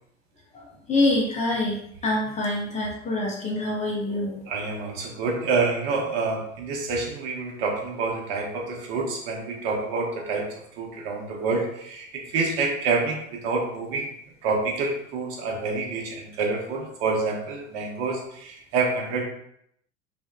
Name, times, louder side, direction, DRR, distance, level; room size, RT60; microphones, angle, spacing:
voice 1, 0.9-4.3, left 2 dB, 20° left, -2 dB, 0.5 m, -25 dB
voice 2, 4.5-14.1 14.4-19.2, right 4 dB, 55° right, 0 dB, 0.7 m, -27 dB
2.7 x 2.1 x 2.2 m, 0.73 s
hypercardioid pair, 80°, 38 cm